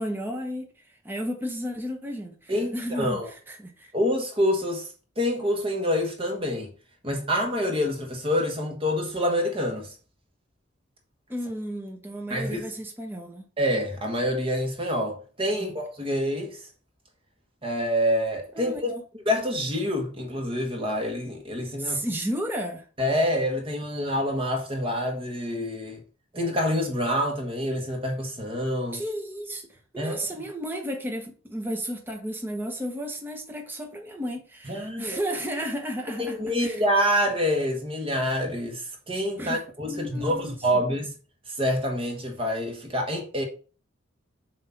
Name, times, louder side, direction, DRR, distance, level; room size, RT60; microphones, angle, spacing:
voice 1, 0.0-3.2 3.5-3.9 11.3-13.4 15.6-15.7 18.5-19.0 21.8-22.8 28.9-36.8 39.4-39.6 39.9-40.6, equal, 10° right, 0.8 m, -33 dB
voice 2, 2.5-3.3 3.9-4.9 5.2-6.7 7.0-10.0 12.3-12.7 13.6-16.6 17.6-18.9 19.2-22.0 23.0-26.0 26.3-29.0 30.0-30.2 34.7-35.2 36.2-41.1 41.5-43.4, equal, 30° right, 1.2 m, -27 dB
7.2 x 2.8 x 5.7 m
head